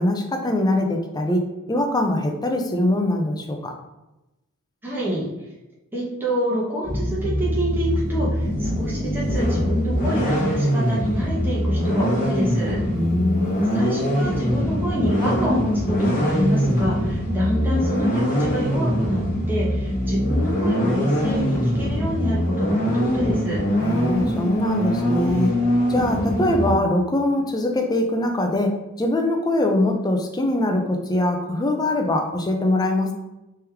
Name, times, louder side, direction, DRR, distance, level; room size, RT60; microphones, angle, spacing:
voice 1, 0.0-3.7 12.9-13.9 23.8-25.6 25.9-33.1, left 1 dB, 20° left, 3 dB, 0.5 m, -22 dB
voice 2, 4.8-5.3 5.9-12.8 13.7-19.2 19.5-23.6, equal, 10° right, -7 dB, 0.9 m, -27 dB
sound 1, 6.8-26.7, equal, 40° left, 1.4 m, -23 dB
3.4 x 3.0 x 3.4 m, 0.97 s
head